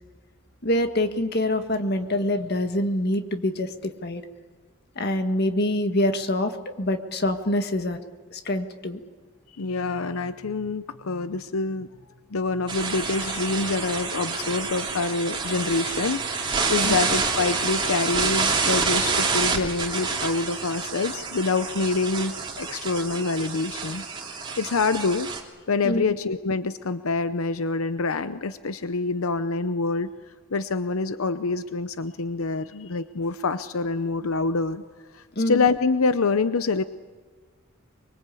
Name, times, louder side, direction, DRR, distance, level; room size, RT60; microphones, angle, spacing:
voice 1, 0.6-4.2 5.0-8.0 8.3-9.0 16.8-17.0 25.8-26.0 35.4-35.6, left 1 dB, 50° left, 7 dB, 1.7 m, -25 dB
voice 2, 9.6-11.9 12.3-24.0 24.3-25.3 25.7-30.1 30.5-34.8 35.1-36.8, left 3 dB, 85° left, 12 dB, 0.7 m, -26 dB
sound 1, 12.7-25.4, right 4 dB, 25° right, 3.1 m, -28 dB
24.5 x 23.0 x 8.5 m, 1.5 s
head